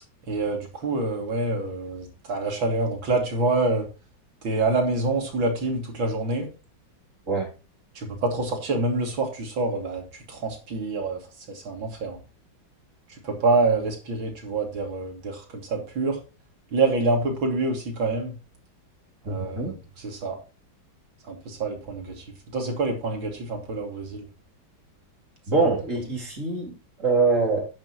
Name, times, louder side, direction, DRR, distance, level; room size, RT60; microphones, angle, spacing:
voice 1, 0.3-3.9 4.4-6.5 8.0-11.2 11.5-12.2 13.2-16.2 16.7-18.3 19.3-19.8 20.0-20.4 21.3-22.2 22.5-24.3, right 3 dB, 90° right, 2 dB, 3.6 m, -26 dB
voice 2, 19.3-19.7 25.5-27.7, right 3 dB, 40° right, 0 dB, 3.6 m, -24 dB
10.5 x 9.6 x 3.1 m, 0.31 s
omnidirectional pair, 2.1 m